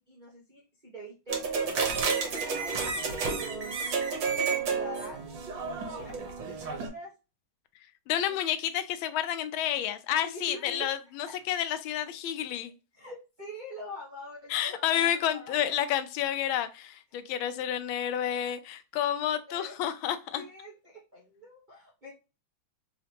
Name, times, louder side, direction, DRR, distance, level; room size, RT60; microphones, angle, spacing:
voice 1, 0.0-1.4 2.5-3.8 4.6-5.4 5.9-7.1 8.2-8.4 10.2-10.9 11.3-11.4 12.9-15.5 19.5-19.8 20.3-22.1, equal, 30° right, 0.9 m, -44 dB
sound 1, 1.3-6.9, right 5 dB, 65° right, 1.8 m, -31 dB
voice 2, 8.1-12.7 14.5-20.4, left 10 dB, 80° left, 1.4 m, -30 dB
4.1 x 2.9 x 2.9 m
omnidirectional pair, 2.3 m